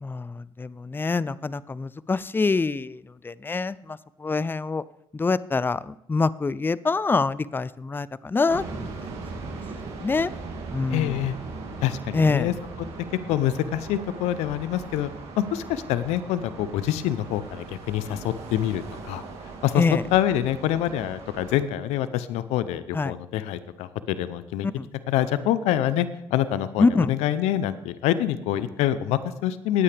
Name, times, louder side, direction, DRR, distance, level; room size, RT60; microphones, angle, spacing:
voice 1, 0.0-3.0 3.2-3.8 4.2-4.8 5.1-8.9 10.0-10.3 10.7-11.1 12.1-12.5 19.8-20.0 22.9-23.1 24.8-24.9 26.8-27.1, left 4 dB, 20° left, 19 dB, 0.4 m, -25 dB
sound 1, 8.5-21.6, right 4 dB, 75° right, 2.6 m, -39 dB
voice 2, 10.9-11.4 11.8-12.5 13.3-15.1 15.4-19.2 19.6-19.8 20.1-24.7 25.1-29.8, left 12 dB, 80° left, 14 dB, 0.6 m, -26 dB
18.5 x 8.5 x 3.4 m, 0.83 s
supercardioid pair, 65°, 11 cm